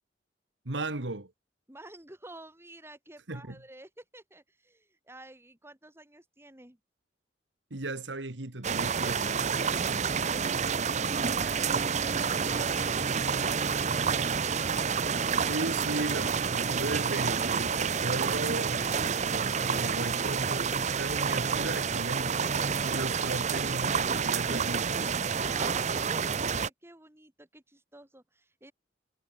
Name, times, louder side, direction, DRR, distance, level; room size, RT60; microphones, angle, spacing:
voice 1, 0.6-1.3 3.3-3.6 7.7-9.4 15.4-22.4 22.8-25.1, right 2 dB, 90° right, 2.1 m, -36 dB
voice 2, 1.7-6.8 25.3-28.7, right 1 dB, 15° right, 4.2 m, -50 dB
sound 1, 8.6-26.7, right 6 dB, 40° right, 0.7 m, -29 dB
head